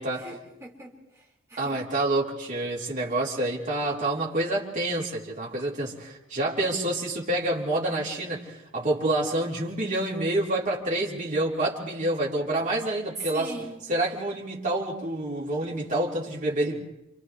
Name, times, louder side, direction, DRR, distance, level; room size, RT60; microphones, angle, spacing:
voice 1, 0.0-1.8 13.2-13.8, right 2 dB, 15° right, -4 dB, 4.2 m, -40 dB
voice 2, 1.6-13.5 13.9-16.8, right 1 dB, 40° right, -4 dB, 3.6 m, -28 dB
28.5 x 28.0 x 3.2 m, 0.90 s
head